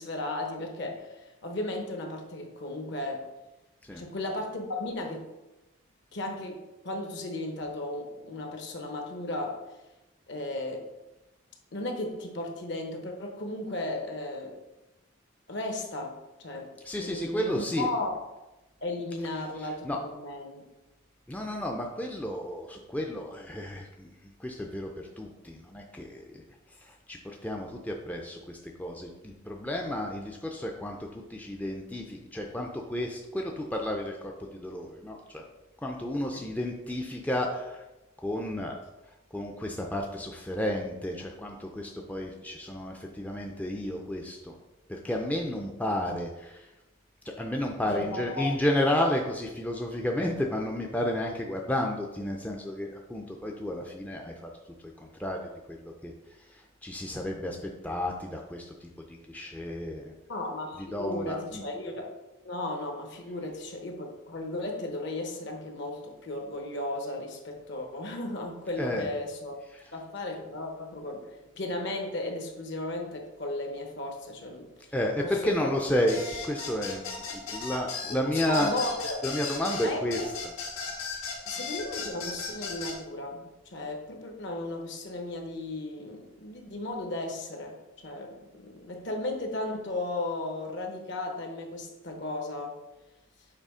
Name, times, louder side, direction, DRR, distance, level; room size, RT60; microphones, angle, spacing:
voice 1, 0.0-3.3 4.0-5.3 6.1-9.6 10.3-10.9 11.7-14.6 15.5-18.3 18.8-20.6 36.3-36.5 47.8-48.5 60.3-62.1 62.4-69.5 69.9-74.7 75.2-75.7 78.2-79.2 79.8-80.2 81.5-87.8 88.0-92.7, left 2 dB, 55° left, 3 dB, 0.9 m, -35 dB
voice 2, 16.8-17.9 19.4-20.0 21.3-26.4 26.8-35.4 35.8-37.8 38.2-38.8 39.3-44.6 44.9-46.7 47.2-54.5 55.0-55.4 55.7-56.1 56.5-57.6 57.8-60.1 60.7-61.6 68.8-69.1 69.7-69.9 74.9-77.0 77.3-78.7 79.2-80.3 81.0-81.3, left 1 dB, 5° left, 0 dB, 0.4 m, -32 dB
sound 1, 76.1-83.0, left 5 dB, 80° left, 1.8 m, -36 dB
6.7 x 3.1 x 4.9 m, 1.0 s
head